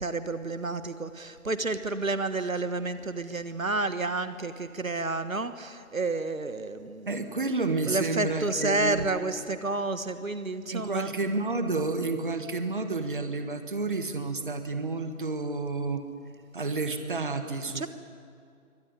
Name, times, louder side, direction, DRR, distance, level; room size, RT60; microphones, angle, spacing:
voice 1, 0.0-7.4 7.9-11.1 17.7-17.9, right 3 dB, 70° right, 11 dB, 1.5 m, -30 dB
voice 2, 7.1-9.1 10.7-16.0 16.5-17.9, right 3 dB, 35° right, 8 dB, 1.5 m, -30 dB
24.0 x 18.0 x 9.9 m, 2.3 s
figure-of-eight pair, 160°, 42 cm